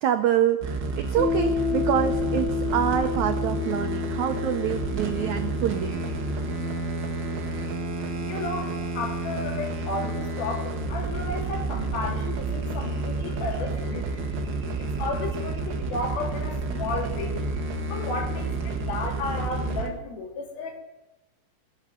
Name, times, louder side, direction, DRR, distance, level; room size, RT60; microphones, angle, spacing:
voice 1, 0.0-6.0, right 10 dB, 85° right, 7 dB, 1.6 m, -26 dB
sound 1, 0.6-19.9, right 2 dB, 40° right, 1.7 m, -30 dB
Piano, 1.2-8.4, left 8 dB, 30° left, 3.4 m, -32 dB
sound 2, 1.9-20.0, right 8 dB, 65° right, 1.9 m, -40 dB
voice 2, 8.2-14.2 14.8-17.4 17.9-20.8, left 3 dB, 75° left, 1 dB, 4.4 m, -33 dB
21.5 x 7.3 x 9.1 m, 1.0 s
omnidirectional pair, 4.4 m